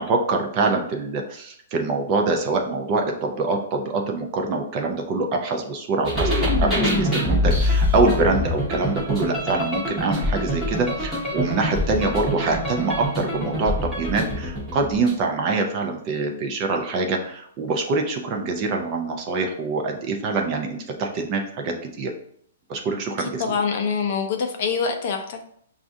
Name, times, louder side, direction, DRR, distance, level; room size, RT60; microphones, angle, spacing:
voice 1, 0.0-22.1 22.7-23.6, right 3 dB, 20° right, 2 dB, 0.4 m, -25 dB
sound 1, 6.0-15.2, left 1 dB, 5° right, 0.8 m, -24 dB
voice 2, 23.4-25.5, left 5 dB, 35° left, 4 dB, 0.5 m, -25 dB
6.0 x 2.4 x 2.6 m, 0.66 s
hypercardioid pair, 180°, 0 cm